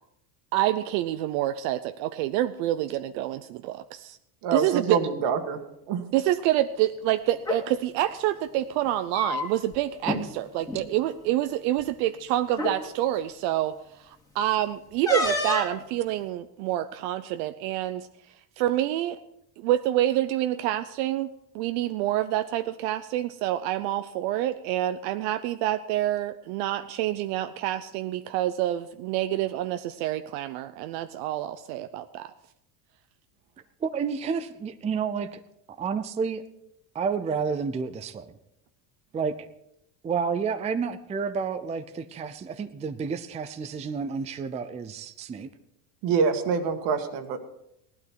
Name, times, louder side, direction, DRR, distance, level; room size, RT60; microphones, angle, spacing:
voice 1, 0.5-4.2 4.5-5.0 6.1-18.1 18.6-19.2 19.6-32.3, right 13 dB, 80° right, 10 dB, 0.8 m, -27 dB
voice 2, 4.4-5.6 5.9-6.0 46.0-47.4, right 5 dB, 60° right, 7 dB, 1.9 m, -25 dB
sound 1, 7.3-7.6 8.9-9.8 10.0-10.2 10.6-10.8 11.8-11.9 12.5-12.8 15.1-15.8, left 2 dB, 10° left, 2.1 m, -28 dB
voice 3, 33.8-35.4 35.8-36.4 36.9-38.3 39.1-39.5 40.0-45.5, right 5 dB, 15° right, 10 dB, 0.5 m, -30 dB
16.5 x 12.0 x 4.7 m, 0.79 s
cardioid pair, 130°, 46 cm